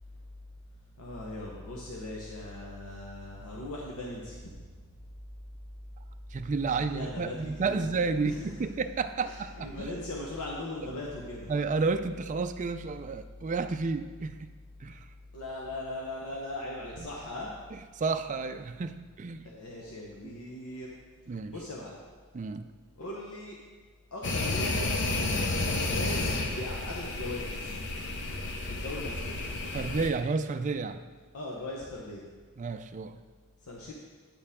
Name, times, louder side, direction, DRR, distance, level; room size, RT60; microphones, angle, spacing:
voice 1, 1.0-4.6 6.7-8.5 9.2-11.5 15.3-17.5 19.4-20.9 21.5-22.0 23.0-23.6 24.1-25.1 25.9-27.8 28.7-29.5 31.3-32.3 33.6-33.9, left 1 dB, 85° left, -3 dB, 1.0 m, -39 dB
voice 2, 6.3-9.9 11.5-14.5 14.8-15.1 17.7-19.5 20.2-20.3 21.3-21.6 22.3-22.7 29.7-31.0 32.6-33.2, right 4 dB, 35° right, 8 dB, 0.4 m, -31 dB
sound 1, 24.2-30.1, left 2 dB, 55° left, 0.8 m, -31 dB
9.7 x 6.8 x 3.6 m, 1.4 s
head